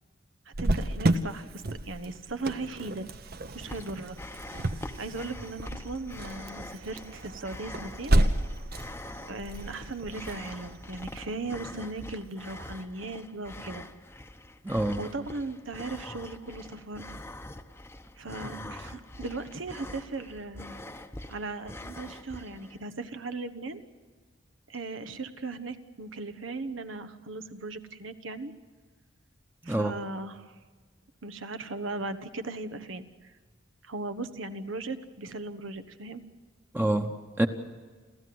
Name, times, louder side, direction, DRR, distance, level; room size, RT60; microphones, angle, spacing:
Cricket, 0.5-12.0, right 1 dB, 50° right, 1.0 m, -32 dB
voice 1, 0.5-3.1 3.5-4.2 5.0-8.2 9.3-13.9 15.0-17.1 18.2-20.8 21.3-23.8 24.7-28.5 29.6-30.5 31.2-33.3 33.8-36.2, right 3 dB, 80° right, 10 dB, 1.3 m, -38 dB
sound 1, 3.6-22.8, left 1 dB, 15° left, 0.9 m, -44 dB
voice 2, 14.6-15.0 29.6-30.0 36.7-37.5, right 1 dB, 10° right, 4 dB, 1.0 m, -27 dB
29.5 x 14.0 x 7.9 m, 1.5 s
head